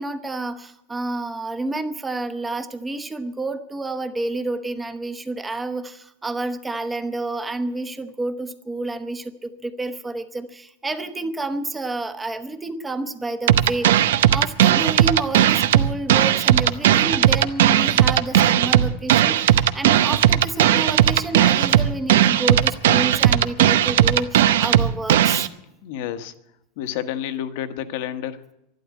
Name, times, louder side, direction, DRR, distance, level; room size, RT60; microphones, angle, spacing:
voice 1, 0.0-13.9 14.3-25.5, right 2 dB, 10° right, 9 dB, 1.0 m, -29 dB
sound 1, 13.5-25.5, right 11 dB, 85° right, 0.7 m, -17 dB
voice 2, 25.8-26.3 26.8-28.6, left 10 dB, 60° left, 11 dB, 1.2 m, -30 dB
12.0 x 12.0 x 9.5 m, 0.85 s
supercardioid pair, 160°, 0 cm